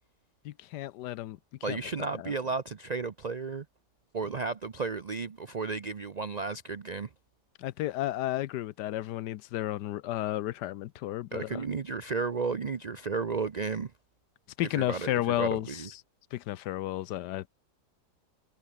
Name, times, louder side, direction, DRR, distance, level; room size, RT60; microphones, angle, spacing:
voice 1, 0.4-1.4 1.7-1.8 2.2-2.3 7.6-11.6 14.6-15.8 16.3-17.5, left 14 dB, 80° left, 1.2 m, -32 dB
voice 2, 1.6-3.7 4.1-7.1 11.3-13.9 14.6-15.9, right 4 dB, 80° right, 0.3 m, -33 dB
omnidirectional pair, 1.8 m